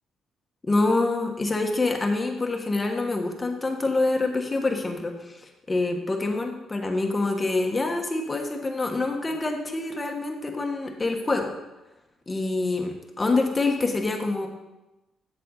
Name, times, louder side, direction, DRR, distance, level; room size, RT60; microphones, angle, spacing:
voice 1, 0.6-11.5 12.3-14.5, left 2 dB, 25° left, 2 dB, 1.4 m, -26 dB
7.7 x 7.7 x 4.1 m, 1.0 s
cardioid pair, 90°, 0 cm